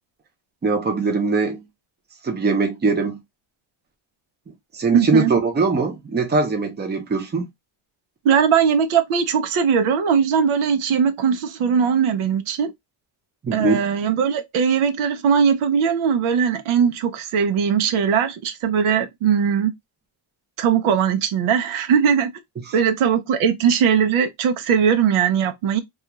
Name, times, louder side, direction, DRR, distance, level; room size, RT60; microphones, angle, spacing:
voice 1, 0.6-1.6 2.2-3.2 4.7-7.5 13.4-13.8 22.7-22.8, right 4 dB, 20° right, 0.6 m, -21 dB
voice 2, 4.9-5.3 8.2-12.7 13.5-19.7 20.6-22.3 22.7-25.8, right 7 dB, 85° right, 0.6 m, -19 dB
2.4 x 2.3 x 2.9 m
cardioid pair, 140°, 48 cm